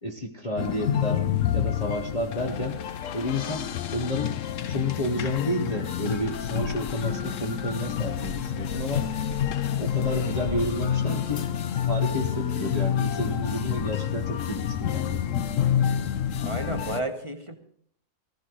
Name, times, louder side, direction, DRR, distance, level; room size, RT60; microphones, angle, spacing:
voice 1, 0.0-1.3 1.5-2.8 3.1-9.1 9.8-11.5 11.8-15.2, left 1 dB, 30° left, 2 dB, 1.0 m, -31 dB
sound 1, 0.6-17.0, left 9 dB, 65° left, 1.0 m, -28 dB
voice 2, 16.4-17.6, right 2 dB, 20° right, 4 dB, 1.1 m, -32 dB
19.0 x 15.0 x 3.2 m, 0.65 s
omnidirectional pair, 1.6 m